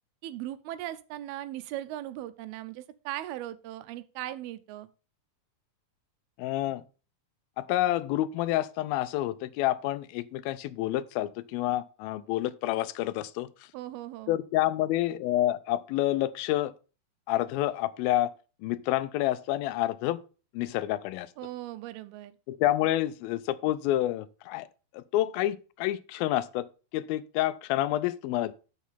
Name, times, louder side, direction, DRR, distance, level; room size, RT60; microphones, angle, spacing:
voice 1, 0.2-4.9 13.7-14.4 21.4-22.3, right 14 dB, 85° right, 2.6 m, -38 dB
voice 2, 6.4-6.8 7.6-13.5 14.3-16.7 17.3-18.3 18.6-20.2 20.5-21.3 22.5-24.7 24.9-26.7 26.9-28.5, left 14 dB, 80° left, 2.3 m, -28 dB
7.0 x 6.4 x 5.7 m
omnidirectional pair, 4.3 m